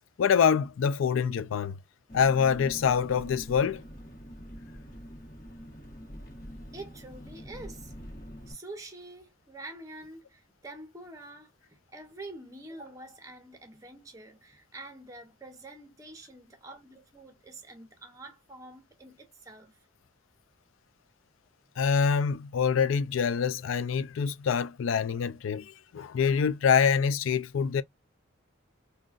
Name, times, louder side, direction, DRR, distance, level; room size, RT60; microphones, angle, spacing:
voice 1, 0.2-1.8 2.1-3.8 21.8-27.8, left 6 dB, 80° left, 0.4 m, -25 dB
Engine, 2.1-8.5, equal, 40° left, 1.1 m, -45 dB
voice 2, 6.7-7.9 8.5-19.8, right 2 dB, 15° right, 0.7 m, -46 dB
3.8 x 2.2 x 2.4 m
head